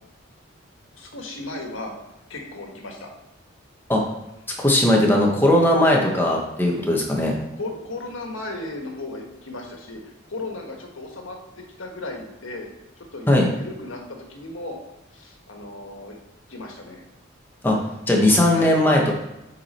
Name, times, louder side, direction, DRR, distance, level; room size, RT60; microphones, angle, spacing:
voice 1, 0.9-1.9 2.3-3.1 4.5-4.6 7.5-12.7 13.0-14.8 15.1-16.2 16.5-17.0 18.5-18.7, left 2 dB, 80° left, 1 dB, 1.5 m, -36 dB
voice 2, 4.6-7.4 13.3-13.5 17.6-17.8 18.1-19.1, left 1 dB, 10° left, -1 dB, 1.2 m, -18 dB
8.5 x 4.8 x 4.3 m, 0.95 s
head